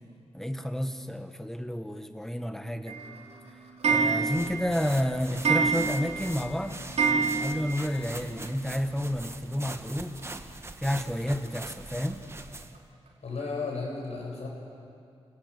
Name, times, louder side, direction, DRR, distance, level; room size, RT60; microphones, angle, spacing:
voice 1, 0.3-3.0 3.9-6.8 7.4-10.2 10.8-12.2, equal, 5° left, 7 dB, 1.4 m, -30 dB
Clock, 2.9-8.0 8.3-8.4 8.6-8.7 8.9-9.0 10.2-10.3 10.8-10.9 11.5-11.6 12.1-12.2 12.7-12.8 13.4-13.5, right 5 dB, 80° right, 3.9 m, -28 dB
sound 1, 4.3-12.8, right 2 dB, 25° right, 1.2 m, -42 dB
voice 2, 13.2-14.5, left 4 dB, 80° left, -1 dB, 6.8 m, -34 dB
30.0 x 17.5 x 8.3 m, 2.5 s
wide cardioid pair, 125°, 11 cm